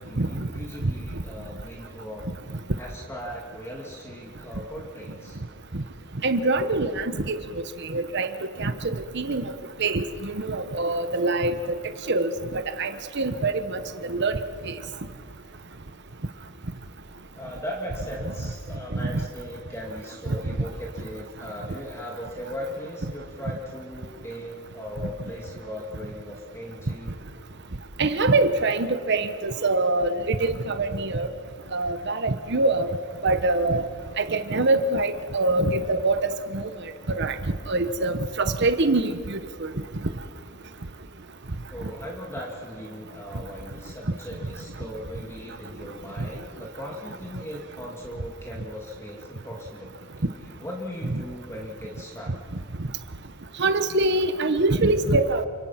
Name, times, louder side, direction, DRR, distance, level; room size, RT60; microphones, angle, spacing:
voice 1, 0.0-2.3 2.8-5.4 14.0-14.1 17.4-27.3 41.7-50.0 50.6-52.3, equal, 15° left, -2 dB, 2.5 m, -38 dB
voice 2, 6.2-7.4 7.9-8.3 8.6-9.4 9.8-11.8 12.1-12.9 13.2-13.8 14.1-14.4 28.0-31.3 31.7-32.9 33.2-33.9 34.2-36.2 36.5-36.6 37.1-37.3 37.7-39.7 53.6-55.5, right 2 dB, 55° right, 9 dB, 1.2 m, -24 dB
29.0 x 25.5 x 5.9 m, 2.2 s
head